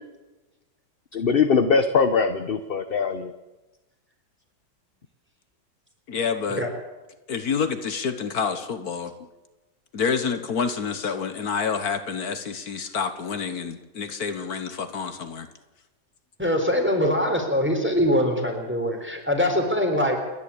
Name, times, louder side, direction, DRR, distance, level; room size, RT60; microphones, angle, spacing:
voice 1, 1.1-3.3, left 5 dB, 40° left, 9 dB, 1.0 m, -21 dB
voice 2, 6.1-6.7 7.3-9.1 9.9-15.5, left 6 dB, 70° left, 9 dB, 1.7 m, -28 dB
voice 3, 16.4-20.2, equal, 5° right, 3 dB, 4.0 m, -23 dB
28.5 x 11.5 x 8.5 m, 1.1 s
omnidirectional pair, 1.7 m